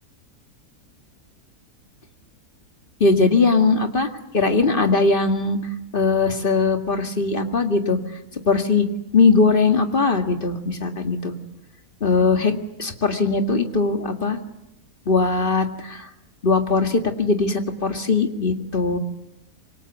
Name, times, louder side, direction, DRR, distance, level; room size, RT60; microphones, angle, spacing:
voice 1, 3.0-4.1 4.3-5.6 5.9-8.0 8.3-8.9 9.1-11.3 12.0-14.4 15.1-16.1 16.4-19.0, left 4 dB, 35° left, 5 dB, 2.1 m, -20 dB
26.5 x 24.0 x 8.2 m, 0.87 s
omnidirectional pair, 1.7 m